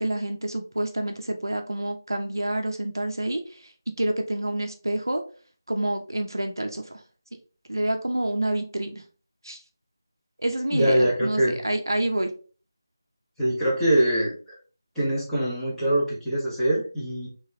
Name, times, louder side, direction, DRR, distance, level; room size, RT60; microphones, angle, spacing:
voice 1, 0.0-3.6 4.0-5.2 5.7-6.8 7.7-9.0 9.4-9.6 10.4-12.3, right 1 dB, 70° right, 5 dB, 0.7 m, -28 dB
voice 2, 10.7-11.6 13.4-14.3 14.9-17.3, right 1 dB, 5° left, -12 dB, 1.4 m, -23 dB
4.0 x 3.2 x 3.2 m, 0.38 s
figure-of-eight pair, 165°, 2 cm